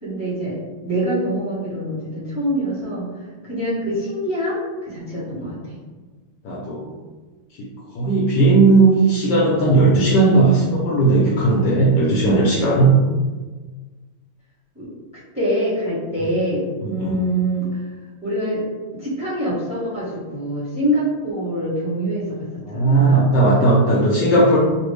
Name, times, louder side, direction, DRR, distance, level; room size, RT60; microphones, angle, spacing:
voice 1, 0.0-5.8 14.7-14.9 15.3-17.8 18.2-18.6 19.0-22.4 22.7-23.3, right 1 dB, 5° right, -9 dB, 0.9 m, -25 dB
voice 2, 5.1-5.5 6.4-6.9 7.6-13.0 16.2-16.3 16.8-17.2 22.7-24.6, right 3 dB, 75° left, -4 dB, 1.0 m, -16 dB
3.2 x 2.4 x 3.2 m, 1.3 s
omnidirectional pair, 2.2 m